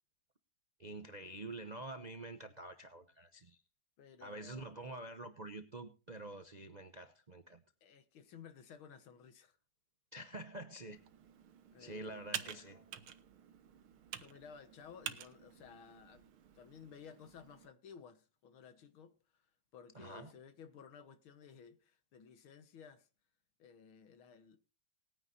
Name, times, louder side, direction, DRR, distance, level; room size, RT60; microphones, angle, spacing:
voice 1, 0.8-3.6 4.2-7.6 10.1-11.0 11.8-12.8 19.9-20.3, right 2 dB, 55° right, 0.4 m, -47 dB
voice 2, 4.0-4.7 7.8-9.6 11.7-12.5 14.2-19.4 19.7-23.1 23.6-24.6, left 7 dB, 85° left, 2.1 m, -56 dB
Computer keyboard, 10.9-17.7, right 9 dB, 80° right, 1.8 m, -49 dB
20.0 x 9.7 x 2.6 m
omnidirectional pair, 2.2 m